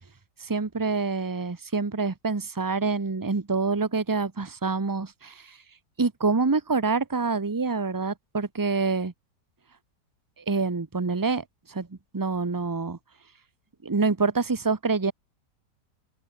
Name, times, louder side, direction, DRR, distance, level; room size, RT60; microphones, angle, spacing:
voice 1, 0.4-5.6 6.0-9.1 10.4-11.9 12.1-13.0 13.8-15.1, right 4 dB, 25° right, 0.4 m, -26 dB
open air
omnidirectional pair, 1.9 m